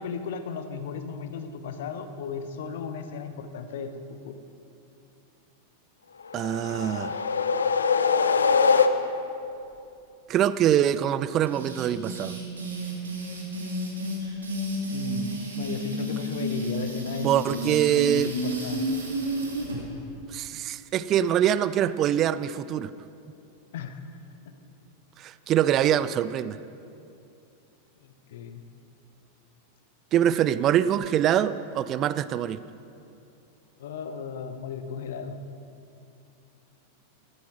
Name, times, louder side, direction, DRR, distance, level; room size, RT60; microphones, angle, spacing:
voice 1, 0.0-4.4 14.9-17.8 18.1-18.9 23.7-24.1 25.9-26.0 28.0-28.6 33.8-35.4, left 6 dB, 55° left, 9 dB, 1.0 m, -35 dB
sound 1, 6.3-9.4, left 5 dB, 70° left, 0.6 m, -23 dB
voice 2, 6.3-7.2 10.3-12.4 17.2-18.3 20.3-22.9 25.2-26.6 30.1-32.6, right 10 dB, 35° right, 16 dB, 0.4 m, -24 dB
sound 2, 11.5-19.8, right 1 dB, 75° right, 2.6 m, -31 dB
13.0 x 13.0 x 6.1 m, 2.6 s
figure-of-eight pair, 90°, 0 cm